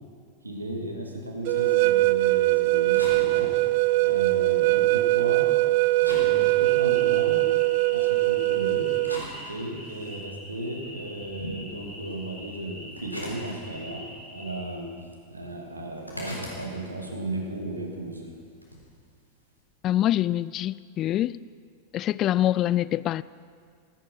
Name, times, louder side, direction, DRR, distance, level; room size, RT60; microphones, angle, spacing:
voice 1, 0.4-3.5 4.0-5.5 6.0-7.5 7.9-8.9 9.4-14.9 15.3-18.3, right 1 dB, 80° right, 2.7 m, -35 dB
sound 1, 1.5-9.2, right 20 dB, 50° right, 0.3 m, -22 dB
sound 2, 2.7-5.6 5.9-8.0 8.6-10.2 10.6-14.2 14.4-15.3 15.5-18.9, equal, 85° left, 3.9 m, -41 dB
sound 3, 6.6-14.7, left 1 dB, 5° left, 5.3 m, -44 dB
voice 2, 19.8-21.4 21.9-23.2, left 13 dB, 35° left, 0.3 m, -25 dB
16.0 x 15.0 x 5.7 m
figure-of-eight pair, 90°, 0 cm